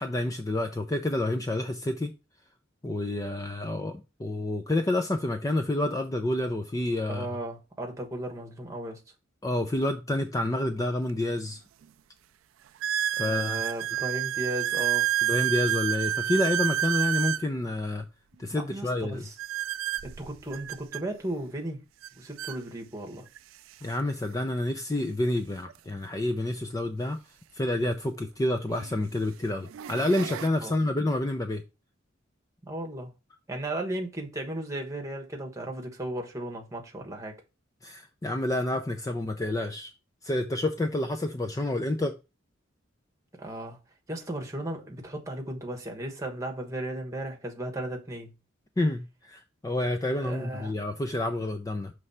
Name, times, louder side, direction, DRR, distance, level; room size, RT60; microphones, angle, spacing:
voice 1, 0.0-2.1 2.8-7.3 9.4-11.6 13.1-13.6 15.2-18.0 18.4-19.2 23.8-27.2 27.5-31.6 37.8-39.9 40.2-42.2 48.8-51.9, left 1 dB, 15° left, 0.4 m, -29 dB
voice 2, 7.1-9.0 13.2-15.1 18.5-19.3 20.0-21.8 22.1-23.3 30.6-30.8 32.6-33.1 33.5-37.4 43.4-43.8 44.1-48.3 50.2-50.7, right 1 dB, 15° right, 1.2 m, -35 dB
sound 1, 11.1-11.2 11.8-11.9 12.8-17.5 19.4-21.0 22.0-22.1 22.4-22.6 23.4-23.5 25.7-25.8 27.9-28.0 28.7-29.0 29.5-30.5, right 12 dB, 85° right, 0.3 m, -29 dB
6.1 x 3.3 x 5.5 m
head